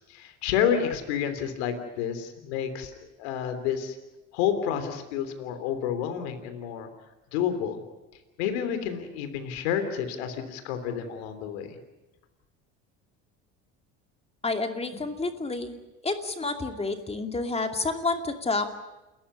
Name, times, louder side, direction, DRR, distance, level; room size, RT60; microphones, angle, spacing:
voice 1, 0.1-2.9 3.2-4.0 4.3-6.9 7.3-7.8 8.4-11.8, left 8 dB, 90° left, 8 dB, 3.3 m, -29 dB
voice 2, 14.4-15.7 16.0-18.8, left 3 dB, 20° left, 6 dB, 2.5 m, -29 dB
29.5 x 14.5 x 9.8 m, 1.0 s
supercardioid pair, 100°, 32 cm